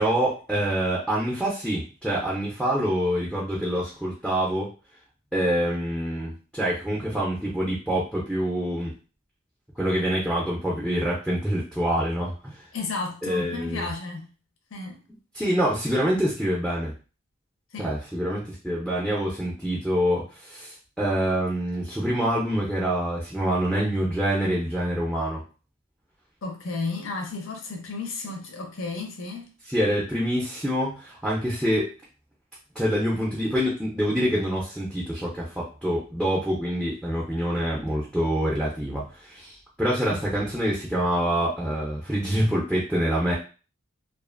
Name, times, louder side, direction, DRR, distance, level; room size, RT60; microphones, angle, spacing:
voice 1, 0.0-4.7 5.3-8.9 9.8-12.6 13.2-13.9 15.3-16.9 17.8-25.4 29.7-31.9 32.8-43.3, equal, ahead, 0.4 m, -26 dB
voice 2, 12.7-14.2 14.7-15.0 17.7-17.9 26.4-29.5 40.1-40.2, left 3 dB, 70° left, 0.7 m, -33 dB
2.5 x 2.4 x 2.4 m
head